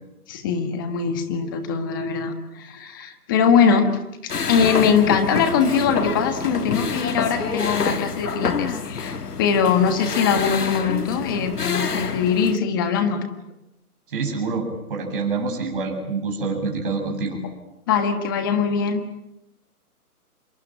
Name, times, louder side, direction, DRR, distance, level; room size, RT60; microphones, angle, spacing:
voice 1, 0.3-3.9 4.2-13.2 17.9-19.0, left 6 dB, 15° left, 8 dB, 1.5 m, -22 dB
sound 1, 4.3-12.6, left 5 dB, 80° left, 2.1 m, -27 dB
voice 2, 14.1-17.4, right 4 dB, 35° right, 1 dB, 8.0 m, -26 dB
27.0 x 22.5 x 9.0 m, 0.88 s
hypercardioid pair, 165°, 45 cm